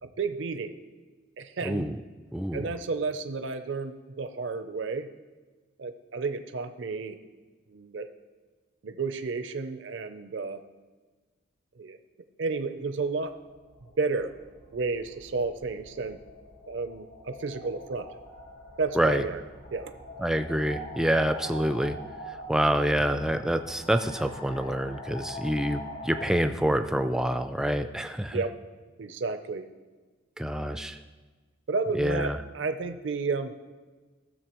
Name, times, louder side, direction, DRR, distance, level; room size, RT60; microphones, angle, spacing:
voice 1, 0.0-0.8 1.4-1.9 2.5-5.1 5.8-7.2 7.7-8.1 8.8-10.6 11.8-12.0 12.4-13.3 14.0-14.3 14.7-16.2 16.7-18.1 18.8-19.4 19.7-19.9 28.3-28.6 29.0-29.7 31.7-33.5, right 4 dB, 65° right, 9 dB, 0.5 m, -31 dB
voice 2, 1.6-2.0 2.3-2.7 19.0-19.2 20.2-22.0 22.3-28.4 30.4-31.0 31.9-32.4, right 1 dB, 5° right, 8 dB, 0.3 m, -27 dB
sound 1, 13.0-26.3, equal, 90° left, 3.0 m, -44 dB
15.5 x 6.7 x 3.0 m, 1.3 s
head